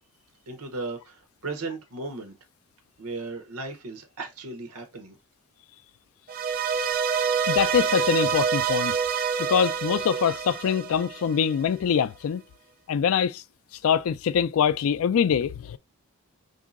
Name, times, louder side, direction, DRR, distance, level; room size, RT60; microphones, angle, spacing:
voice 1, 0.5-2.3 3.0-5.2, right 3 dB, 85° right, 0.8 m, -36 dB
sound 1, 6.3-11.5, right 6 dB, 40° right, 0.3 m, -27 dB
voice 2, 7.5-9.0 9.4-12.4 12.9-13.4 13.7-15.8, left 7 dB, 75° left, 0.3 m, -24 dB
3.8 x 2.7 x 2.4 m
head